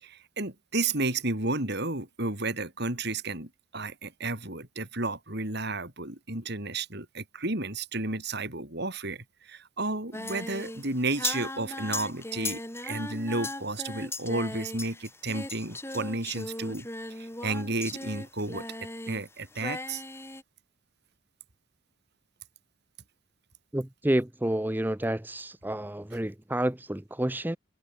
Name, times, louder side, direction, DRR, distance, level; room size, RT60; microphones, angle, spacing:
voice 1, 0.0-18.7 19.0-20.0, right 2 dB, 50° right, 4.9 m, -32 dB
Singing, 10.1-19.3 19.5-20.4, left 2 dB, 10° left, 7.3 m, -38 dB
voice 2, 23.7-27.6, right 1 dB, 10° right, 0.7 m, -29 dB
head